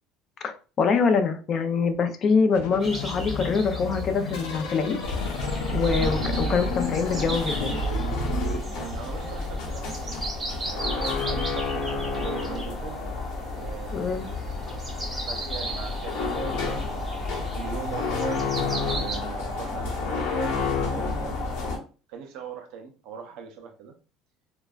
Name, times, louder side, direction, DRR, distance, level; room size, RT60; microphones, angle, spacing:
voice 1, 0.4-4.9 5.7-7.8 13.9-14.3, left 5 dB, 45° left, 0.4 m, -24 dB
sound 1, 2.5-8.6, left 1 dB, 90° left, 0.6 m, -31 dB
sound 2, 2.8-19.2, right 2 dB, 15° right, 0.9 m, -38 dB
sound 3, 5.0-21.8, left 3 dB, 75° left, 0.9 m, -30 dB
voice 2, 8.7-10.2 10.5-13.0 13.5-14.3 15.2-18.2 18.9-21.4 22.1-23.9, right 6 dB, 70° right, 0.6 m, -41 dB
3.1 x 2.1 x 2.3 m
supercardioid pair, 115°, 0 cm